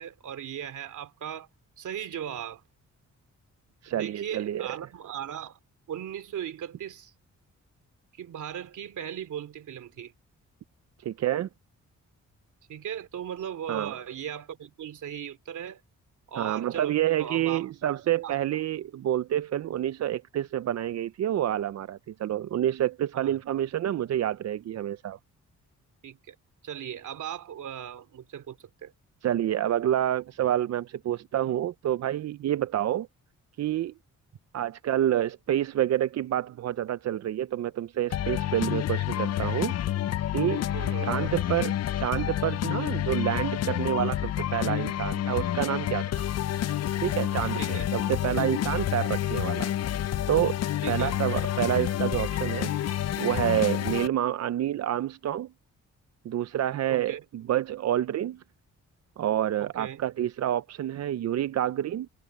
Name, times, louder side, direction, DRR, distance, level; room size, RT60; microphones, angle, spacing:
voice 1, 0.0-1.5 1.8-2.6 3.9-5.6 5.9-7.1 8.1-10.1 12.7-15.8 16.3-16.9 17.2-17.9 18.2-18.4 23.1-23.3 26.0-26.3 26.6-28.9 40.7-41.1 47.6-47.9 50.8-51.1 56.9-57.2 59.6-60.0, right 9 dB, 75° right, 2.7 m, -38 dB
voice 2, 3.8-4.7 11.0-11.5 13.7-14.0 16.4-25.2 29.2-33.1 33.6-33.9 34.5-39.7 40.3-40.6 41.0-46.2 47.0-49.7 50.3-50.6 50.9-52.7 53.2-55.5 56.2-58.4 59.2-62.1, right 12 dB, 60° right, 0.5 m, -28 dB
sound 1, 38.1-54.1, left 12 dB, 55° left, 0.5 m, -29 dB
wide cardioid pair, 165°, 30 cm